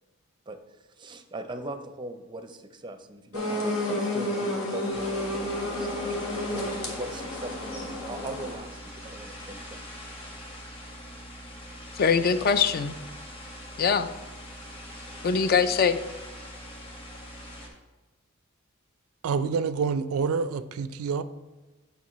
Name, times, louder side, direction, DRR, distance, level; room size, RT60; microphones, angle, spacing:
voice 1, 1.0-9.8, right 1 dB, 20° right, 8 dB, 0.5 m, -40 dB
sound 1, 3.3-8.5, left 1 dB, 90° left, 1.5 m, -31 dB
sound 2, 4.9-17.7, equal, 25° left, 1.4 m, -43 dB
voice 2, 12.0-12.9 13.8-14.1 15.2-16.0, left 6 dB, 45° left, 11 dB, 0.4 m, -22 dB
voice 3, 19.2-21.2, right 5 dB, 80° right, 14 dB, 0.4 m, -27 dB
8.5 x 5.6 x 3.0 m, 1.2 s
head